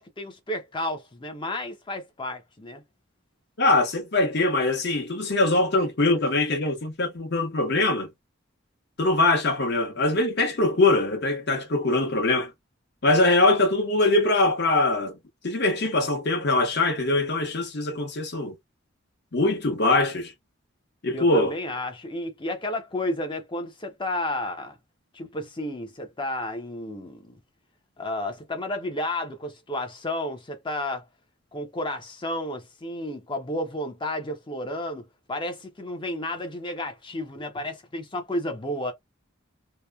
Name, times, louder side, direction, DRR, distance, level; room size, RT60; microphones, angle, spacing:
voice 1, 0.0-2.8 21.1-24.8 25.1-27.4 28.0-31.0 31.5-38.9, left 1 dB, 25° left, 0.5 m, -32 dB
voice 2, 3.6-8.1 9.0-12.5 13.0-15.2 15.4-18.5 19.3-20.3 21.0-21.5, left 2 dB, 55° left, 0.9 m, -22 dB
2.8 x 2.1 x 2.3 m
head